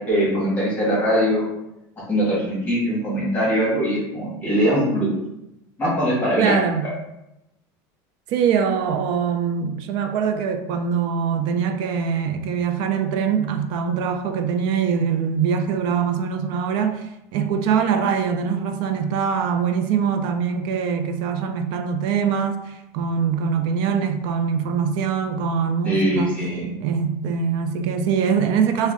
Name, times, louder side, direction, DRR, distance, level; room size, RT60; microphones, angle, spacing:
voice 1, 0.0-1.5 2.1-5.1 5.8-6.6 25.8-26.7, equal, 15° left, -7 dB, 1.4 m, -21 dB
voice 2, 6.4-6.9 8.3-26.3 26.8-28.9, right 6 dB, 50° right, 7 dB, 0.4 m, -23 dB
3.5 x 2.1 x 3.6 m, 0.87 s
cardioid pair, 165°, 10 cm